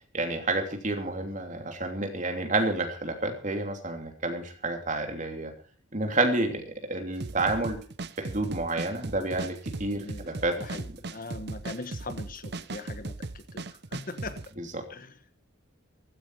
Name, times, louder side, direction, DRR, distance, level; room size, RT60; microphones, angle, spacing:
voice 1, 0.1-5.5 5.9-7.8 8.2-10.6 14.6-14.8, right 2 dB, 40° right, 5 dB, 3.0 m, -29 dB
sound 1, 7.2-14.5, right 3 dB, 55° right, 0.8 m, -38 dB
voice 2, 10.6-14.4 14.9-15.1, left 2 dB, 45° left, 10 dB, 1.4 m, -41 dB
15.0 x 15.0 x 4.8 m, 0.41 s
head